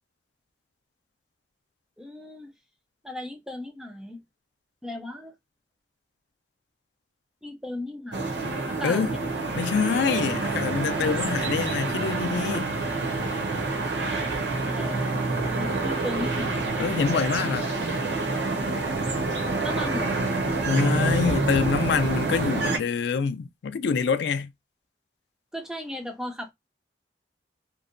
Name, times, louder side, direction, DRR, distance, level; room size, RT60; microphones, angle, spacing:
voice 1, 2.0-2.5 3.0-4.2 4.8-5.3 7.4-8.4 8.7-9.2 14.1-14.3 14.7-16.7 19.6-20.2 25.5-26.5, left 1 dB, 5° right, 0.3 m, -36 dB
sound 1, 8.1-22.8, right 3 dB, 80° right, 0.6 m, -27 dB
voice 2, 9.6-12.7 16.8-17.7 20.6-24.5, left 5 dB, 80° left, 0.4 m, -26 dB
2.6 x 2.1 x 2.5 m
head